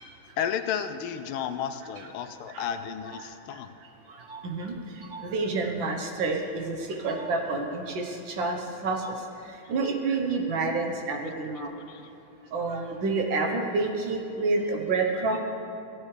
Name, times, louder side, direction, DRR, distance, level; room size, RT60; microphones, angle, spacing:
voice 1, 0.4-3.7 11.8-12.1, left 8 dB, 80° left, 10 dB, 1.4 m, -33 dB
voice 2, 4.1-4.7 5.1-8.6 8.8-9.1 9.7-11.7 12.5-15.4, right 3 dB, 70° right, 3 dB, 1.7 m, -28 dB
16.0 x 9.3 x 3.2 m, 2.8 s
omnidirectional pair, 2.3 m